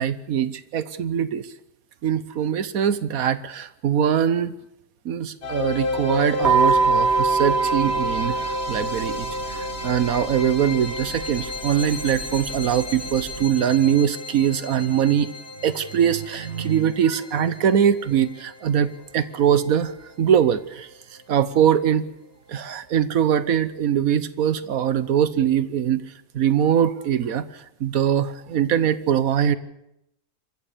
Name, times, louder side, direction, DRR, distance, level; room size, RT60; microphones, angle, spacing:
voice 1, 0.0-1.5 2.0-4.5 5.0-15.3 15.6-19.9 20.2-20.9 21.3-22.0 22.5-26.0 26.3-27.4 27.8-29.6, right 9 dB, 70° right, 15 dB, 1.4 m, -22 dB
sound 1, 5.4-20.4, left 3 dB, 90° left, 2.4 m, -33 dB
sound 2, 6.4-13.4, right 4 dB, 45° right, 1.7 m, -25 dB
26.5 x 14.5 x 6.8 m, 0.80 s
omnidirectional pair, 1.6 m